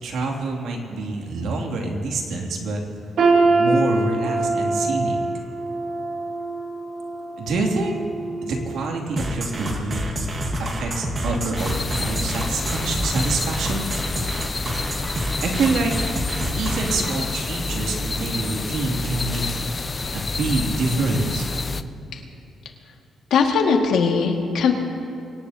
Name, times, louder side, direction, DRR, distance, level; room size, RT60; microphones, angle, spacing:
voice 1, 0.0-2.8 3.4-5.2 7.4-8.0 8.4-10.0 10.6-13.9 15.4-15.9 16.5-19.5 20.1-21.5, right 3 dB, 80° right, 0 dB, 2.5 m, -26 dB
sound 1, 3.2-9.1 9.5-9.8 10.5-10.6, right 3 dB, 55° right, 2.4 m, -24 dB
sound 2, 9.2-17.1, right 1 dB, 30° right, 1.6 m, -28 dB
sound 3, 11.6-21.8, left 3 dB, 25° left, 0.4 m, -28 dB
voice 2, 23.3-24.7, left 5 dB, 80° left, 2 dB, 1.8 m, -19 dB
24.0 x 18.0 x 2.8 m, 2.8 s
cardioid pair, 165°, 0 cm